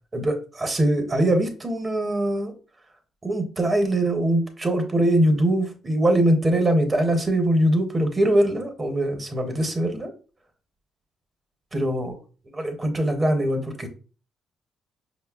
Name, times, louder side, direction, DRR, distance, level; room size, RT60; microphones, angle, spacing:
voice 1, 0.1-2.5 3.2-10.1 11.7-12.2 12.5-13.9, right 1 dB, 25° right, 6 dB, 0.7 m, -22 dB
5.2 x 2.0 x 2.3 m, 0.37 s
cardioid pair, 110°, 0 cm